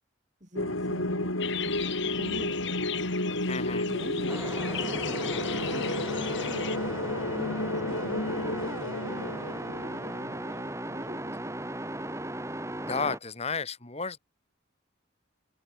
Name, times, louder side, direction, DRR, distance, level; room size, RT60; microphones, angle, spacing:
voice 1, 0.4-1.8 2.0-2.7 3.9-6.8 7.3-11.7, equal, 35° right, 7.6 m, -45 dB
sound 1, 0.6-10.7, left 1 dB, 85° left, 6.3 m, -32 dB
sound 2, 1.4-6.8, left 11 dB, 60° left, 1.9 m, -38 dB
voice 2, 3.5-3.9 12.8-14.2, left 4 dB, 30° left, 2.3 m, -32 dB
sound 3, 4.3-13.2, right 1 dB, 15° right, 4.7 m, -37 dB
head